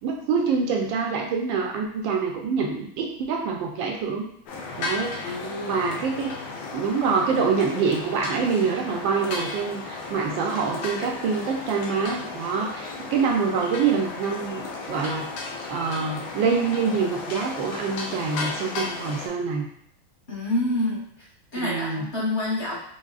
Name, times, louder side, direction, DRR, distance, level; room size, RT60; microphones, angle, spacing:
voice 1, 0.0-4.3 4.8-5.3 5.7-6.4 6.7-15.3 15.7-19.6 21.6-22.0, right 5 dB, 75° right, 1 dB, 1.3 m, -26 dB
sound 1, 4.5-19.3, left 3 dB, 80° left, 1.5 m, -34 dB
voice 2, 5.2-6.0 20.3-21.3 21.5-22.8, left 1 dB, 20° left, -6 dB, 0.6 m, -28 dB
4.7 x 2.3 x 2.3 m, 0.69 s
omnidirectional pair, 2.2 m